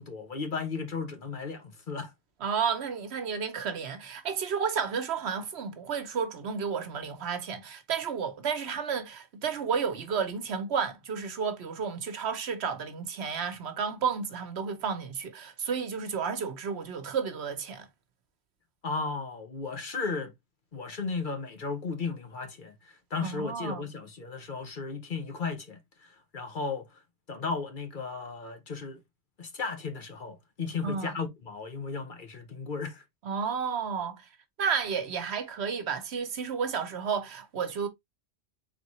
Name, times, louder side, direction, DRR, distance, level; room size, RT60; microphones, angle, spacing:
voice 1, 0.0-2.1 18.8-20.3 20.7-26.9 27.3-29.0 29.4-33.0, left 4 dB, 50° left, 1.0 m, -35 dB
voice 2, 2.4-17.9 23.2-23.8 30.8-31.2 33.2-34.2 34.6-37.9, right 6 dB, 70° right, 1.1 m, -32 dB
3.8 x 3.7 x 3.0 m
omnidirectional pair, 1.2 m